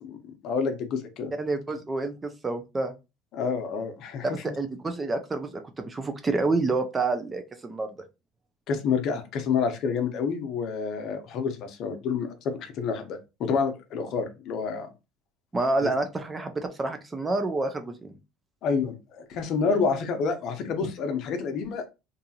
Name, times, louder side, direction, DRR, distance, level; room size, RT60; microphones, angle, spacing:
voice 1, 0.0-1.3 3.3-4.4 8.7-14.9 15.8-15.9 18.6-21.8, left 5 dB, 50° left, 7 dB, 0.6 m, -28 dB
voice 2, 1.4-2.9 4.2-7.9 15.5-18.1, right 3 dB, 15° right, 8 dB, 0.4 m, -28 dB
2.6 x 2.4 x 2.7 m, 0.26 s
cardioid pair, 130°, 0 cm